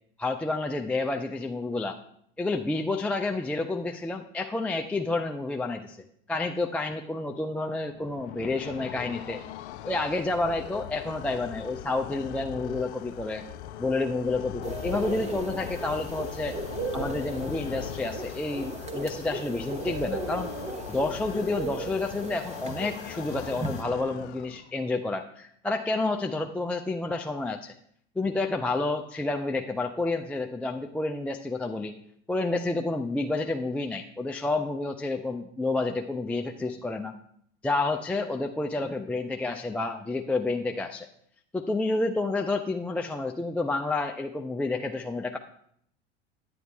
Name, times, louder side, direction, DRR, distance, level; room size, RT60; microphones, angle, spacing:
voice 1, 0.2-2.0 2.4-6.0 6.3-9.4 9.8-13.4 13.8-16.6 16.9-20.5 20.9-27.7 28.2-31.9 32.3-37.2 37.6-41.1 41.5-45.4, left 2 dB, 5° left, 4 dB, 0.3 m, -29 dB
sound 1, 7.9-24.9, left 12 dB, 65° left, 0.6 m, -40 dB
sound 2, 14.6-23.8, right 3 dB, 20° right, 1.0 m, -36 dB
9.4 x 9.3 x 3.4 m, 0.69 s
hypercardioid pair, 80°, 36 cm